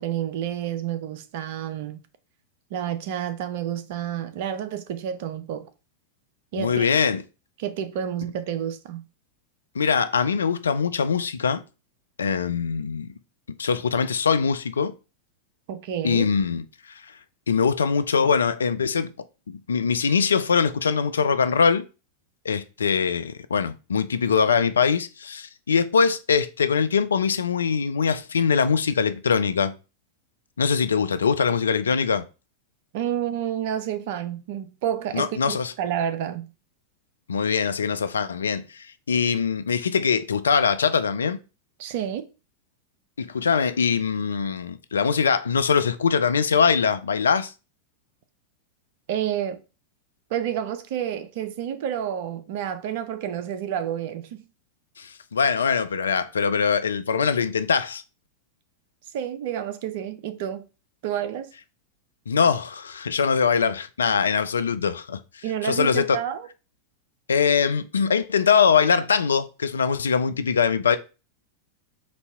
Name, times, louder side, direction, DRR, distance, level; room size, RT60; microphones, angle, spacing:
voice 1, 0.0-2.0 2.7-5.7 6.5-6.9 7.6-9.0 15.7-16.3 32.9-36.5 41.8-42.3 49.1-49.6 50.3-54.5 59.1-60.6 61.0-61.5 65.4-66.5, right 10 dB, 50° right, 0.6 m, -29 dB
voice 2, 6.6-7.2 9.7-11.6 12.2-13.1 13.6-14.9 16.0-17.0 17.5-19.1 19.5-21.8 22.4-29.7 30.6-32.3 35.1-35.7 37.3-41.4 43.2-47.5 55.0-58.0 62.3-66.2 67.3-71.0, left 6 dB, 70° left, 0.4 m, -22 dB
4.1 x 2.8 x 4.4 m
figure-of-eight pair, 90°, 0 cm